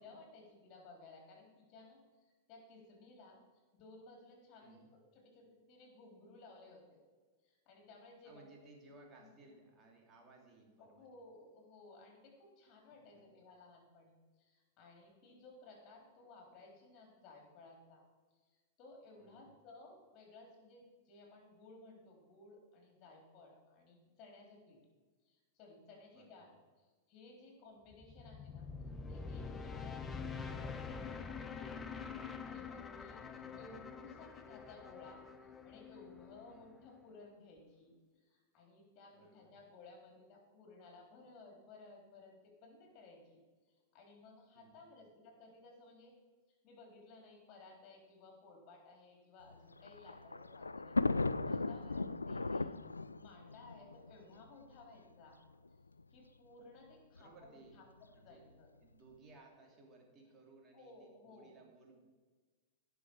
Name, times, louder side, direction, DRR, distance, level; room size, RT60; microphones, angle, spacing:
voice 1, 0.0-3.4 3.7-7.0 7.4-8.7 9.2-9.3 10.8-18.1 18.3-24.8 25.2-26.5 26.8-28.7 29.1-31.4 32.2-35.2 35.6-43.4 43.7-46.1 46.6-50.9 51.2-52.7 53.2-55.4 56.1-58.7 60.7-61.6, left 3 dB, 35° left, 1 dB, 3.9 m, -58 dB
voice 2, 4.6-4.9 8.2-11.1 12.9-13.3 19.2-19.5 26.1-26.4 36.5-36.8 39.1-39.6 44.5-44.8 57.2-57.8 58.1-58.5 58.8-62.0, right 3 dB, 25° right, 0 dB, 2.8 m, -61 dB
sound 1, 27.9-37.0, left 5 dB, 15° left, 0.8 m, -46 dB
Thunder, 49.5-54.8 55.7-55.8 56.0-56.1 57.2-57.5, left 3 dB, 80° left, 0.3 m, -37 dB
17.0 x 6.1 x 4.8 m, 1.4 s
figure-of-eight pair, 95°, 0 cm